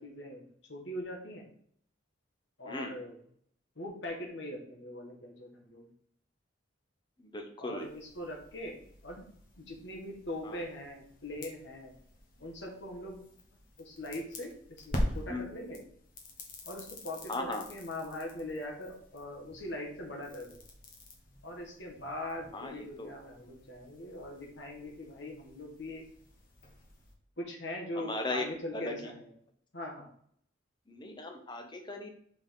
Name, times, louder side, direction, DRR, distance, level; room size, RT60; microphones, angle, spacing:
voice 1, 0.0-1.5 2.6-3.2 3.8-5.9 7.6-9.2 9.6-11.9 12.4-13.2 13.8-14.5 14.8-15.8 16.7-20.6 21.4-26.0 27.4-29.3 29.7-30.1, left 1 dB, 65° left, 0 dB, 1.7 m, -41 dB
voice 2, 2.7-3.0 7.2-7.9 10.4-10.6 15.3-15.4 17.3-17.6 22.5-23.1 27.9-28.4 28.7-28.9 30.9-32.1, left 2 dB, 25° left, 4 dB, 0.9 m, -37 dB
sound 1, 7.8-27.1, equal, 45° left, 1.3 m, -45 dB
5.4 x 4.8 x 3.9 m, 0.64 s
head